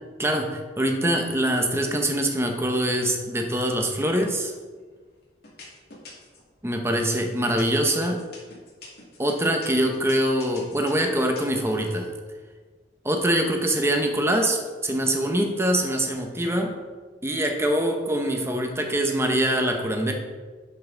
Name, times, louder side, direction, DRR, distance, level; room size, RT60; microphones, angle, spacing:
voice 1, 0.2-4.5 6.6-8.2 9.2-12.1 13.0-16.7 17.2-20.1, right 1 dB, 15° right, 3 dB, 1.0 m, -24 dB
sound 1, 4.5-5.0 5.4-6.5 7.0-12.0, left 3 dB, 60° left, 2.4 m, -45 dB
10.5 x 5.7 x 3.9 m, 1.4 s
head